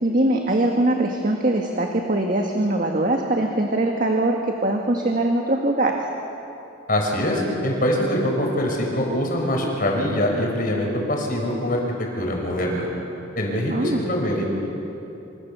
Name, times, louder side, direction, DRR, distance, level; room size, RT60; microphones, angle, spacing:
voice 1, 0.0-6.0 13.7-14.0, right 1 dB, 45° right, 2 dB, 1.7 m, -22 dB
voice 2, 6.9-11.8 12.2-12.9 13.4-14.5, equal, 45° left, 0 dB, 5.9 m, -23 dB
27.0 x 26.0 x 7.0 m, 2.9 s
head